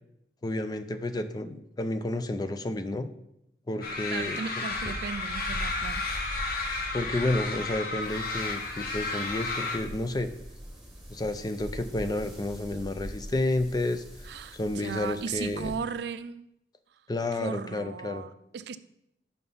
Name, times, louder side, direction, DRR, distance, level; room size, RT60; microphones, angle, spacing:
voice 1, 0.4-3.1 3.7-4.7 6.9-10.3 11.1-14.0 14.5-15.7 17.1-18.2, left 2 dB, 20° left, 0.4 m, -31 dB
sound 1, 3.8-9.8, left 3 dB, 55° left, 1.1 m, -32 dB
voice 2, 4.1-6.0 14.2-16.5 17.4-18.8, right 6 dB, 65° right, 0.4 m, -36 dB
sound 2, 8.0-15.8, equal, ahead, 1.4 m, -45 dB
5.8 x 5.6 x 5.5 m
head